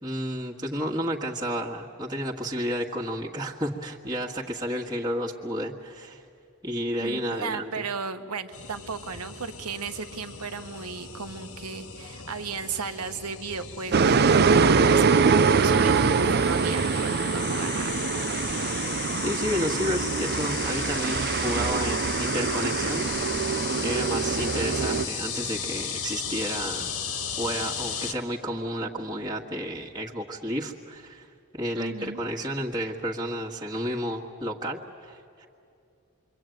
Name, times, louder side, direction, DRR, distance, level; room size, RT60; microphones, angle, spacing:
voice 1, 0.0-6.2 6.6-7.9 19.2-23.1 23.4-26.9 27.4-31.3 31.5-35.5, equal, 20° right, -3 dB, 1.7 m, -31 dB
voice 2, 7.0-18.1 31.7-32.2, right 5 dB, 90° right, 9 dB, 1.3 m, -35 dB
sound 1, 8.5-28.1, left 7 dB, 70° left, 2.0 m, -35 dB
sound 2, 13.9-25.1, right 5 dB, 50° right, 0.6 m, -24 dB
27.5 x 23.5 x 9.2 m, 2.6 s
head